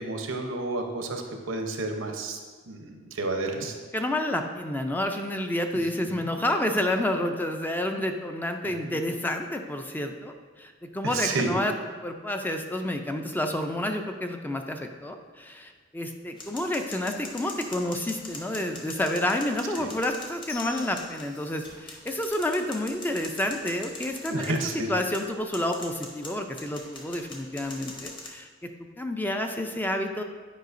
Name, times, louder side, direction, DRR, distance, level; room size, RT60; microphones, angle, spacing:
voice 1, 0.0-2.4 2.7-3.7 6.0-6.3 8.8-9.0 11.0-11.6 19.8-19.9 24.3-24.9, right 2 dB, 85° right, 4 dB, 0.8 m, -31 dB
voice 2, 3.9-11.7 12.0-24.6 24.9-28.5 29.0-30.2, left 1 dB, 10° left, 5 dB, 0.4 m, -29 dB
sound 1, 16.4-28.3, left 2 dB, 25° left, 0.9 m, -42 dB
9.3 x 4.8 x 2.6 m, 1.4 s
head